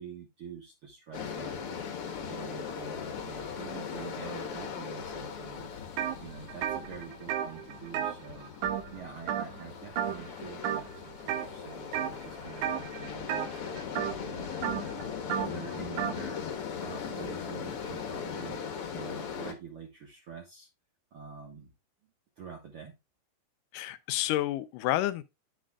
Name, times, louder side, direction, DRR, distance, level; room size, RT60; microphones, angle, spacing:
voice 1, 0.0-8.5 8.9-14.8 15.4-18.6 18.9-20.7 21.1-21.7 22.4-22.9, right 7 dB, 55° right, 1.9 m, -46 dB
sound 1, 1.1-19.5, left 7 dB, 55° left, 1.9 m, -39 dB
sound 2, 6.0-6.2 6.5-9.0 9.3-9.7 10.0-10.3 10.6-11.5 11.9-12.2 12.6-16.2, right 10 dB, 75° right, 2.1 m, -33 dB
voice 2, 23.7-25.2, left 14 dB, 85° left, 2.2 m, -29 dB
9.8 x 7.5 x 2.3 m
omnidirectional pair, 3.7 m